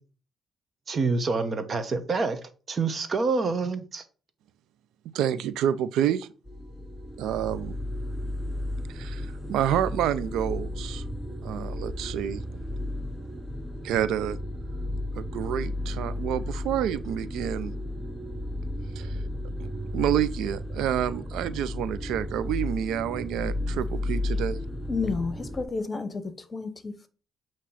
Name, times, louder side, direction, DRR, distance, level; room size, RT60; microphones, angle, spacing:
voice 1, 0.9-2.4 2.7-4.0, right 4 dB, 40° right, 1.1 m, -27 dB
voice 2, 5.1-6.3 7.2-7.7 8.9-11.0 11.4-12.4 13.8-14.4 15.1-17.7 19.0-19.2 19.6-19.7 19.9-24.6, right 10 dB, 85° right, 0.4 m, -28 dB
sound 1, 6.5-25.6, left 1 dB, 10° right, 0.7 m, -33 dB
voice 3, 24.9-26.2 26.5-27.1, left 4 dB, 30° left, 1.0 m, -31 dB
8.4 x 3.0 x 5.6 m
cardioid pair, 90°, 0 cm